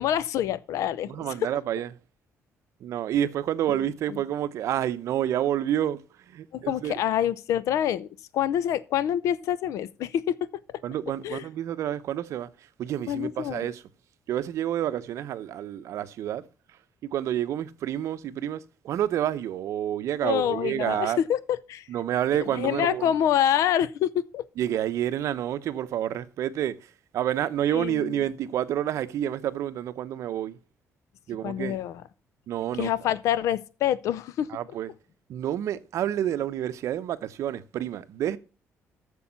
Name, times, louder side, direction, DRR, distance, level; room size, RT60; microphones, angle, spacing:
voice 1, 0.0-1.3 3.7-4.2 6.5-8.1 8.3-10.4 11.2-11.4 13.1-13.7 20.2-21.9 22.5-24.4 27.7-28.2 31.4-32.0 32.8-34.5, left 10 dB, 85° left, 0.7 m, -26 dB
voice 2, 1.1-1.9 2.8-6.0 6.3-6.9 10.8-12.5 12.8-13.8 14.3-16.4 17.1-21.2 21.9-23.1 24.6-30.6 31.3-31.8 32.5-32.9 34.5-34.9 35.3-38.4, right 11 dB, 75° right, 0.8 m, -29 dB
8.4 x 7.1 x 5.7 m
cardioid pair, 135°, 5 cm